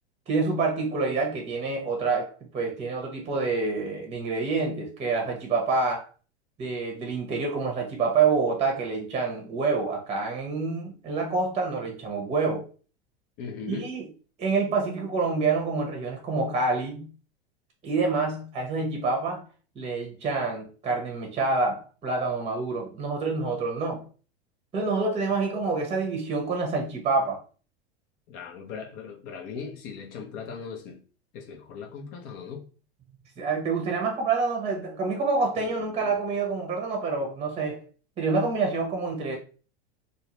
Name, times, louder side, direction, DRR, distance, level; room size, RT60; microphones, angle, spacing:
voice 1, 0.3-6.1 6.6-12.6 13.7-14.1 14.4-17.1 17.8-19.4 19.8-24.0 24.7-27.4 33.4-37.8 38.2-39.4, right 4 dB, 20° right, 0.7 m, -27 dB
voice 2, 13.4-13.9 28.3-31.0 31.3-32.7 35.6-36.2, left 6 dB, 45° left, 0.6 m, -39 dB
2.3 x 2.1 x 3.0 m
hypercardioid pair, 100°, 32 cm